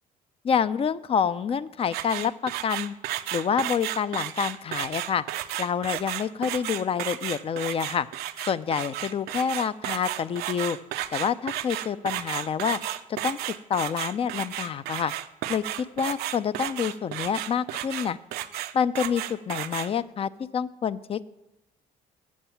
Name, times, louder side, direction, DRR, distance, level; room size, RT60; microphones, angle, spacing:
voice 1, 0.4-2.9 3.3-5.2 5.6-8.1 8.4-10.8 11.1-12.8 13.2-13.4 13.7-15.1 15.5-18.2 18.7-21.3, left 7 dB, 35° left, 16 dB, 0.4 m, -27 dB
sound 1, 1.9-19.9, right 13 dB, 85° right, 0.5 m, -33 dB
7.4 x 6.8 x 7.1 m, 0.89 s
cardioid pair, 95°, 16 cm